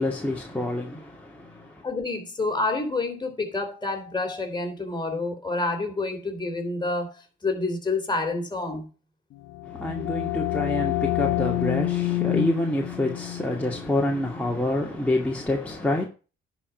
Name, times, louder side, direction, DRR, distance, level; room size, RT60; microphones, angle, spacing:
voice 1, 0.0-1.8 9.6-16.0, left 1 dB, 5° left, 2.2 m, -27 dB
voice 2, 1.8-8.9, left 3 dB, 20° left, 3.4 m, -28 dB
sound 1, 9.4-15.0, left 16 dB, 85° left, 1.0 m, -28 dB
11.0 x 5.1 x 6.8 m
cardioid pair, 90°, 20 cm